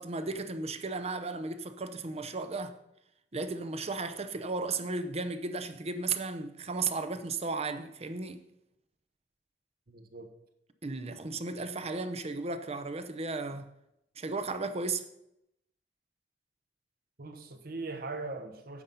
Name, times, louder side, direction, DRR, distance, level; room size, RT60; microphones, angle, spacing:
voice 1, 0.0-2.8 3.3-8.4 10.8-13.7 14.2-15.1, right 3 dB, 35° right, 0.7 m, -35 dB
voice 2, 9.9-10.3 17.2-18.8, right 3 dB, 60° right, 1.1 m, -40 dB
9.7 x 7.0 x 5.5 m
head